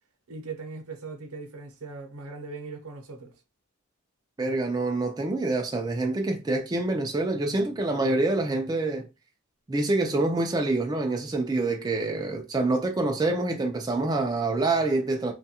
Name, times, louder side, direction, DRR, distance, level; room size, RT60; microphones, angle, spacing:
voice 1, 0.3-3.3, right 4 dB, 75° right, 0.7 m, -39 dB
voice 2, 4.4-9.1 9.7-15.3, right 2 dB, 20° right, 0.3 m, -26 dB
3.0 x 2.2 x 2.8 m
head